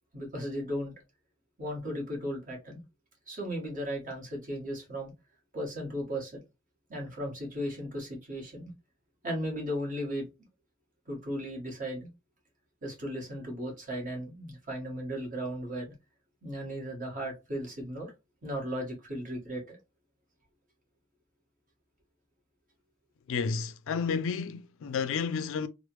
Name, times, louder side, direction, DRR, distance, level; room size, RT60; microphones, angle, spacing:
voice 1, 0.1-0.9 1.6-2.8 3.3-5.1 5.5-6.3 6.9-8.7 9.2-10.3 11.1-12.1 12.8-15.9 16.4-18.1 18.4-19.8, equal, 40° right, 1.3 m, -36 dB
voice 2, 23.3-25.7, left 5 dB, 65° left, 0.3 m, -31 dB
3.2 x 2.1 x 2.9 m
head